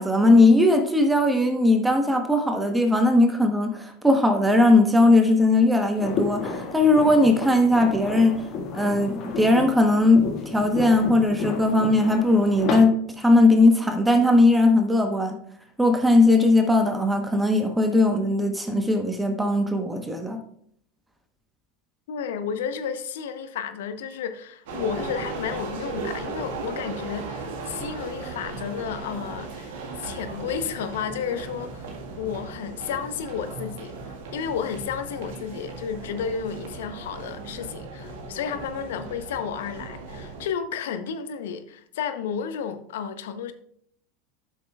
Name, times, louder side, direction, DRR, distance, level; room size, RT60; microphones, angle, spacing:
voice 1, 0.0-8.5 8.7-15.4 15.8-20.4, left 2 dB, 10° right, 1.1 m, -19 dB
sound 1, 6.0-12.8, left 4 dB, 45° left, 1.7 m, -32 dB
voice 2, 22.1-43.5, left 7 dB, 70° left, 0.8 m, -32 dB
sound 2, 24.7-40.5, right 3 dB, 65° right, 1.6 m, -37 dB
12.5 x 6.2 x 2.4 m
hypercardioid pair, 85°, 0 cm